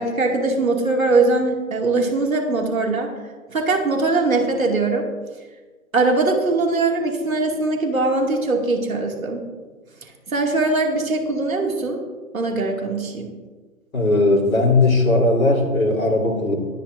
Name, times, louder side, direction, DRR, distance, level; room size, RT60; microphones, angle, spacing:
voice 1, 0.0-3.1 3.5-5.1 5.9-9.4 10.0-12.0 12.3-13.3, right 3 dB, 75° right, 2 dB, 2.6 m, -21 dB
voice 2, 13.9-16.6, left 2 dB, 75° left, 0 dB, 3.6 m, -18 dB
20.0 x 10.0 x 2.6 m, 1.3 s
figure-of-eight pair, 130°, 42 cm